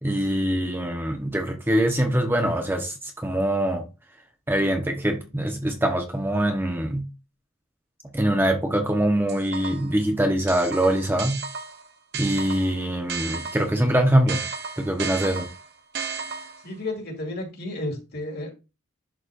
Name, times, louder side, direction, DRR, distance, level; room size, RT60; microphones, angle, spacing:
voice 1, 0.0-3.8 4.5-7.1 8.1-11.4 12.1-14.4 14.8-15.5, right 1 dB, 10° right, 0.9 m, -23 dB
sound 1, 9.3-10.0 10.5-13.8 14.3-16.7, right 5 dB, 50° right, 1.0 m, -34 dB
voice 2, 16.6-18.5, left 2 dB, 50° left, 2.5 m, -32 dB
11.0 x 4.2 x 2.5 m
head